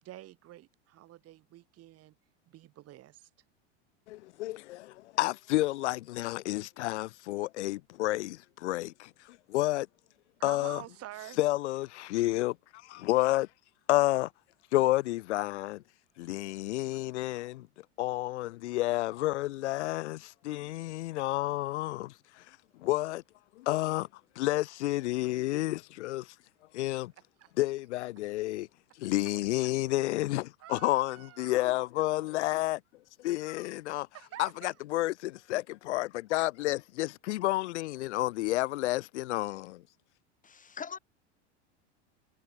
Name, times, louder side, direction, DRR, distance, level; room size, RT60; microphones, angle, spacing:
voice 1, 0.0-2.1 2.5-3.3 10.4-11.4 27.4-27.5 30.6-31.8 34.1-34.8, right 14 dB, 45° right, 4.6 m, -48 dB
voice 2, 4.1-9.9 10.4-10.8 11.4-13.5 13.9-14.3 14.7-15.8 16.2-17.7 18.0-23.2 23.6-24.1 24.4-26.3 26.7-27.1 27.6-28.7 29.0-32.8 33.2-34.1 34.4-39.8, left 17 dB, 75° left, 2.1 m, -30 dB
voice 3, 40.4-41.0, left 6 dB, 20° left, 4.8 m, -41 dB
hypercardioid pair, 110°, 35 cm